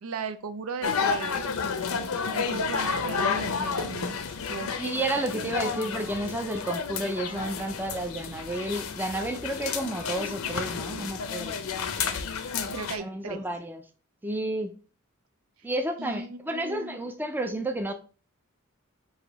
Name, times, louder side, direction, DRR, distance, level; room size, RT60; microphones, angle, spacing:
voice 1, 0.0-1.6 2.3-4.2 4.5-4.7 12.7-13.4 16.0-17.0, right 5 dB, 80° right, 0.5 m, -36 dB
sound 1, 0.8-13.0, left 5 dB, 75° left, 0.6 m, -31 dB
voice 2, 4.8-11.6 13.0-13.8 14.2-14.7 15.6-17.9, right 1 dB, 10° right, 0.4 m, -31 dB
4.8 x 2.7 x 4.1 m
head